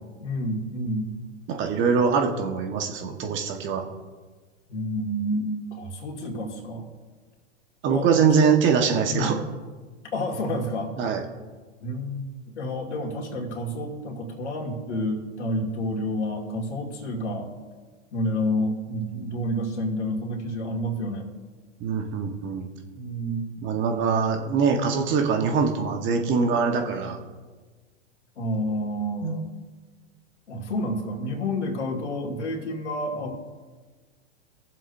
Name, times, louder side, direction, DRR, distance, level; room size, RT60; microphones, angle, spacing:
voice 1, 0.2-1.1 4.7-6.8 7.9-8.5 9.1-9.3 10.1-10.9 11.8-12.3 12.6-17.5 18.1-21.3 22.9-23.5 28.4-29.5 30.5-33.3, equal, 80° left, 1 dB, 2.5 m, -29 dB
voice 2, 1.5-3.9 7.8-9.4 11.0-11.2 21.8-22.7 23.6-27.2 29.2-29.4, right 5 dB, 35° right, 4 dB, 1.4 m, -23 dB
22.5 x 7.5 x 2.7 m, 1.4 s
hypercardioid pair, 110°, 35 cm